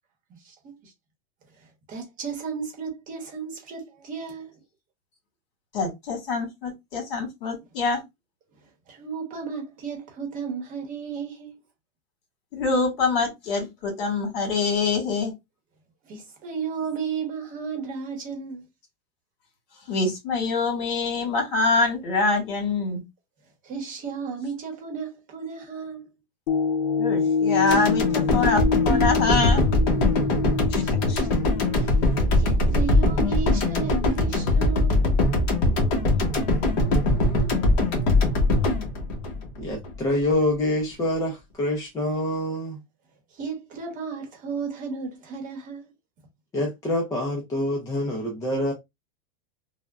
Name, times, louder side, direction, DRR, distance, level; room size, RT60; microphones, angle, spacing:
voice 1, 0.4-0.9 1.9-4.5 8.9-11.6 16.0-18.6 23.6-26.1 30.8-31.3 31.8-35.1 43.4-45.9, right 6 dB, 25° right, 0.9 m, -34 dB
voice 2, 5.7-8.0 12.5-15.3 19.9-23.0 27.0-29.7 30.7-31.2, left 4 dB, 55° left, 1.9 m, -25 dB
sound 1, 26.5-34.9 35.4-35.5, left 5 dB, 90° left, 0.4 m, -27 dB
sound 2, 27.7-39.9 40.3-40.4, left 2 dB, 40° left, 1.0 m, -22 dB
voice 3, 39.6-42.8 46.5-48.7, left 1 dB, 10° left, 0.4 m, -26 dB
3.4 x 2.2 x 2.3 m
supercardioid pair, 150°, 29 cm